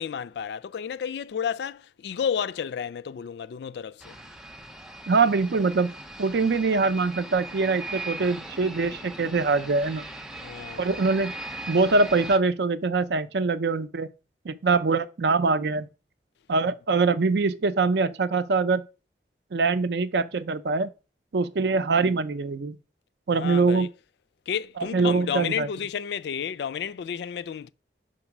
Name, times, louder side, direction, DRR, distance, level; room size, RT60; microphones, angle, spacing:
voice 1, 0.0-4.1 10.4-11.0 16.6-16.7 23.3-23.9 24.5-27.7, left 7 dB, 70° left, 0.3 m, -31 dB
sound 1, 4.0-12.4, right 1 dB, 5° right, 0.5 m, -39 dB
voice 2, 5.1-5.9 6.2-10.0 10.8-11.3 11.7-14.1 14.4-15.9 16.5-18.8 19.5-20.9 21.3-22.8 23.3-23.9 24.9-25.7, right 4 dB, 75° right, 0.5 m, -23 dB
5.3 x 3.9 x 5.9 m
head